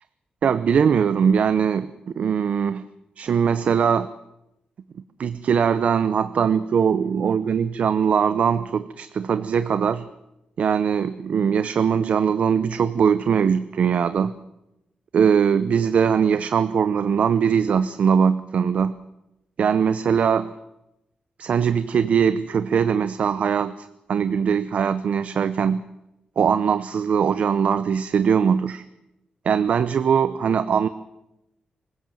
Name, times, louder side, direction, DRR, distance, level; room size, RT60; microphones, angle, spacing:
voice 1, 0.4-2.8 3.2-4.1 5.2-10.1 10.6-14.3 15.1-19.0 19.6-20.5 21.4-25.8 26.4-28.8 29.4-30.9, right 7 dB, 60° right, 13 dB, 0.7 m, -21 dB
24.5 x 16.5 x 7.7 m, 0.90 s
wide cardioid pair, 150°, 3 cm